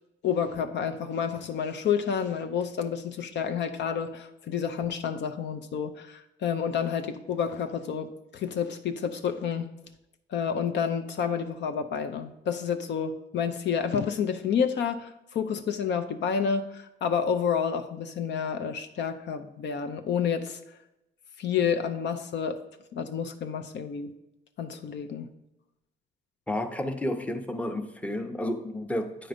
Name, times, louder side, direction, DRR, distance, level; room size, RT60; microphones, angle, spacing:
voice 1, 0.2-9.7 10.3-20.6 21.4-22.6 22.9-24.1 24.6-25.3, left 7 dB, 65° left, 8 dB, 0.6 m, -29 dB
voice 2, 26.5-29.3, left 1 dB, 5° left, 6 dB, 0.7 m, -31 dB
8.8 x 3.8 x 5.1 m, 0.90 s
cardioid pair, 90°, 20 cm